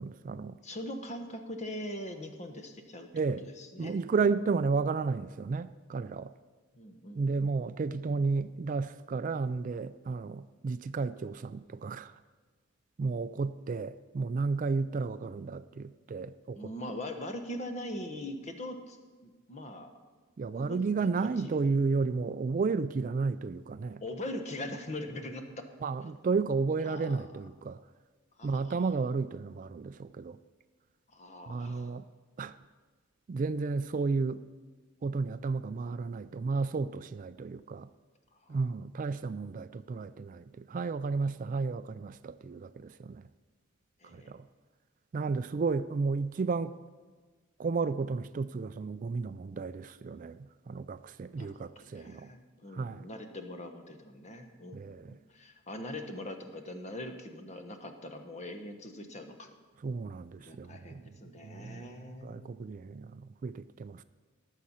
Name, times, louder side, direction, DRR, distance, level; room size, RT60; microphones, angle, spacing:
voice 1, 0.0-0.6 3.1-3.4 3.8-6.3 7.2-12.1 13.0-16.6 20.4-24.0 25.8-27.8 28.4-30.4 31.5-32.0 32.4-32.5 33.3-34.4 35.0-37.9 38.5-43.2 44.1-44.4 45.1-46.7 47.6-50.4 50.7-52.3 52.7-53.1 54.7-55.2 59.8-61.0 61.4-61.9 62.2-64.0, right 4 dB, 40° right, 13 dB, 0.3 m, -32 dB
voice 2, 0.6-3.1 3.4-4.6 6.7-7.6 16.5-19.0 19.2-19.9 20.5-21.7 24.0-25.7 26.0-26.1 26.8-27.3 28.4-28.9 31.1-31.9 38.4-38.7 44.0-44.4 51.4-59.5 60.4-62.5, left 1 dB, 35° left, 6 dB, 1.1 m, -42 dB
18.0 x 7.4 x 5.6 m, 1.4 s
head